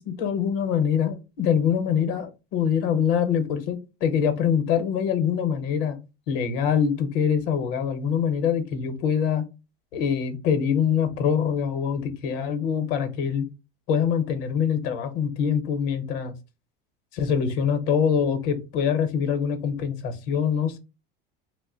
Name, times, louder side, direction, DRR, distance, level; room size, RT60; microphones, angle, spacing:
voice 1, 0.1-6.0 6.3-9.4 9.9-13.4 13.9-16.3 17.1-20.8, left 7 dB, 65° left, 9 dB, 0.8 m, -24 dB
2.6 x 2.1 x 3.8 m, 0.28 s
supercardioid pair, 130°, 29 cm